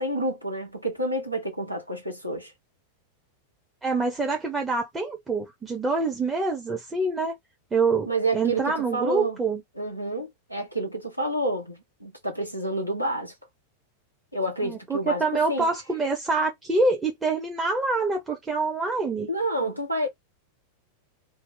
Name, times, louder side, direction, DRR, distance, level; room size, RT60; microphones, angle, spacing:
voice 1, 0.0-2.5 8.1-9.4 9.8-13.3 14.3-15.7 19.3-20.1, right 1 dB, 90° right, 0.9 m, -29 dB
voice 2, 3.8-7.4 7.7-9.6 14.6-19.3, right 3 dB, 15° right, 0.7 m, -26 dB
2.7 x 2.1 x 3.7 m
figure-of-eight pair, 90°, 0 cm